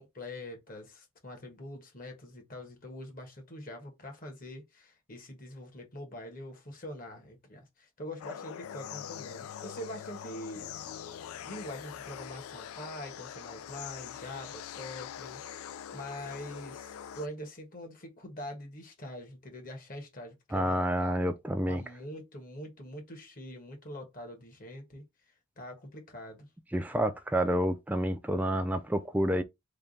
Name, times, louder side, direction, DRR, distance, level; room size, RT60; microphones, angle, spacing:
voice 1, 0.0-10.7 11.4-15.4 15.9-21.2 21.7-25.1 25.6-26.5, left 1 dB, 40° left, 1.2 m, -44 dB
sound 1, 8.2-17.3, left 9 dB, 80° left, 0.3 m, -43 dB
voice 2, 20.5-21.8 26.7-29.4, equal, 5° right, 0.3 m, -29 dB
3.4 x 2.3 x 3.9 m
head